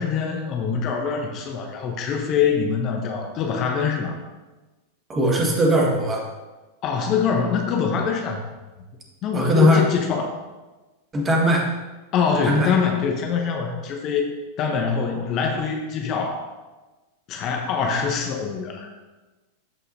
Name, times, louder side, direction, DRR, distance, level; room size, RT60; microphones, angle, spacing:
voice 1, 0.0-4.2 6.8-8.4 9.2-10.3 12.1-14.3 14.6-16.5 17.3-18.9, left 6 dB, 35° left, 3 dB, 1.0 m, -24 dB
voice 2, 5.1-6.2 9.3-9.8 11.1-11.7 12.4-12.7, equal, 20° right, -1 dB, 1.9 m, -19 dB
13.5 x 5.5 x 2.8 m, 1.2 s
figure-of-eight pair, 90°, 0 cm